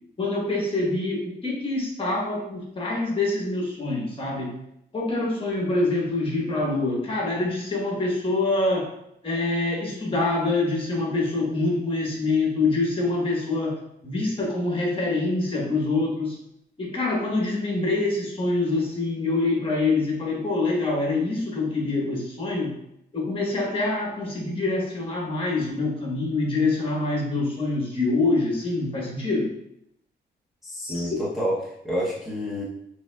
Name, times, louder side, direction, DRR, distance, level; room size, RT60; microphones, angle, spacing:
voice 1, 0.2-4.5 4.9-8.9 9.2-13.8 14.0-16.3 16.8-22.7 23.1-29.5 30.8-31.1, left 2 dB, 30° left, -2 dB, 1.3 m, -25 dB
voice 2, 30.6-32.6, equal, ahead, -8 dB, 0.8 m, -29 dB
6.9 x 3.3 x 2.3 m, 0.76 s
wide cardioid pair, 150°, 19 cm